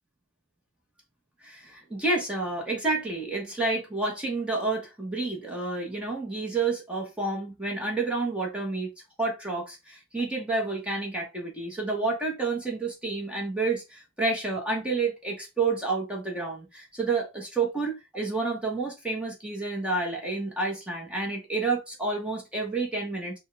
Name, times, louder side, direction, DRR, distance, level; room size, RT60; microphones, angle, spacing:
voice 1, 1.4-8.9 9.2-23.3, right 3 dB, 5° right, 1.0 m, -29 dB
5.4 x 2.3 x 3.2 m
head